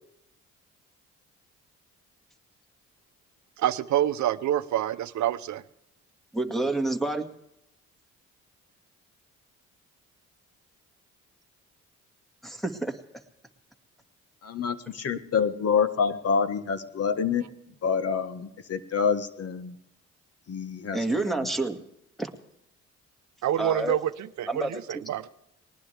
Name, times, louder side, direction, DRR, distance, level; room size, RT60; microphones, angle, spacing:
voice 1, 3.6-5.6 23.4-25.3, right 11 dB, 70° right, 13 dB, 0.8 m, -27 dB
voice 2, 6.3-7.3 12.4-13.0 20.9-21.8 22.2-22.3 23.6-24.0 24.5-25.0, right 2 dB, ahead, 6 dB, 2.0 m, -28 dB
voice 3, 14.4-17.4 17.8-19.7 20.5-21.5, left 6 dB, 55° left, 11 dB, 1.4 m, -27 dB
20.5 x 19.5 x 3.4 m, 0.82 s
cardioid pair, 90°, 30 cm